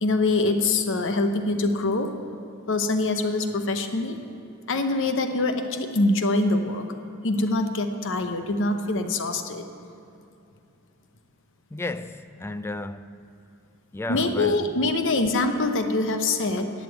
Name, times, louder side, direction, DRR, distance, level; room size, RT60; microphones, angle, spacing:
voice 1, 0.0-2.1 2.7-4.2 4.7-6.8 7.2-9.6 14.1-16.7, left 2 dB, 60° left, 0.8 m, -24 dB
voice 2, 11.7-13.3 13.9-14.8, left 2 dB, 10° left, 0.3 m, -33 dB
11.5 x 7.5 x 8.1 m
head